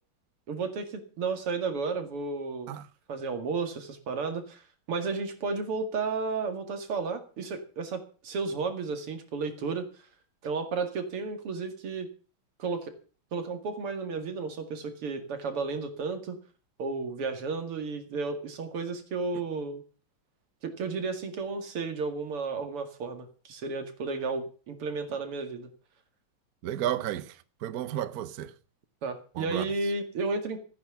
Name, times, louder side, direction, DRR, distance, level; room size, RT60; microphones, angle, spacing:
voice 1, 0.5-2.7 3.1-9.9 10.4-12.1 12.6-12.9 13.3-16.4 16.8-19.8 20.6-25.7 29.0-30.6, right 4 dB, 85° right, 3.0 m, -33 dB
voice 2, 26.6-28.6 29.3-29.7, right 11 dB, 60° right, 1.0 m, -33 dB
15.0 x 9.3 x 6.9 m
omnidirectional pair, 2.4 m